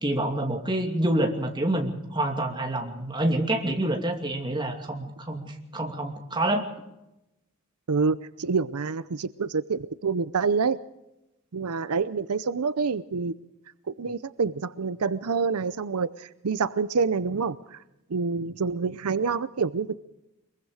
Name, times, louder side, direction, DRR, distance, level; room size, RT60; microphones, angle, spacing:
voice 1, 0.0-6.7, right 1 dB, 20° right, 3 dB, 2.5 m, -27 dB
voice 2, 7.9-10.8 11.5-13.3 13.9-17.8 18.1-19.9, right 5 dB, 85° right, 15 dB, 0.7 m, -27 dB
23.0 x 22.5 x 4.9 m, 0.92 s
head